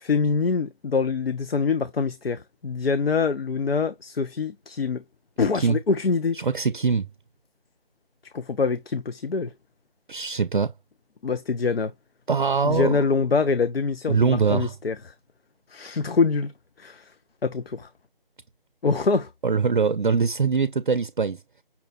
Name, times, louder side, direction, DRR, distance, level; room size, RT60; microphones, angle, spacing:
voice 1, 0.0-5.0 5.4-6.5 8.3-9.5 11.2-11.9 12.6-15.1 15.7-16.5 16.8-17.1 17.4-17.9 18.8-19.3, left 4 dB, 90° left, 0.6 m, -25 dB
voice 2, 6.3-7.1 10.1-10.7 12.3-13.1 14.1-14.7 19.4-21.4, right 5 dB, 60° right, 0.5 m, -23 dB
5.8 x 2.3 x 3.6 m
figure-of-eight pair, 165°, 29 cm